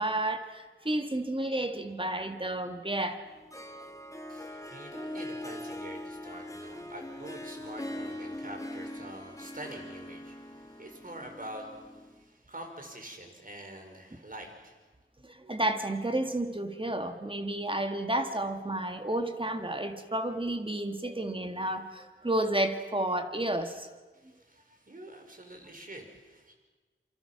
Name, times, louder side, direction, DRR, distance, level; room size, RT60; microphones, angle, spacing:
voice 1, 0.0-3.2 15.2-23.9, right 1 dB, 25° right, 6 dB, 1.9 m, -31 dB
Harp, 3.3-12.2, left 1 dB, 15° left, 2.2 m, -42 dB
voice 2, 4.3-14.8 24.1-26.5, right 1 dB, 40° right, 3 dB, 5.1 m, -46 dB
27.0 x 25.0 x 6.0 m, 1.3 s
wide cardioid pair, 70°, 21 cm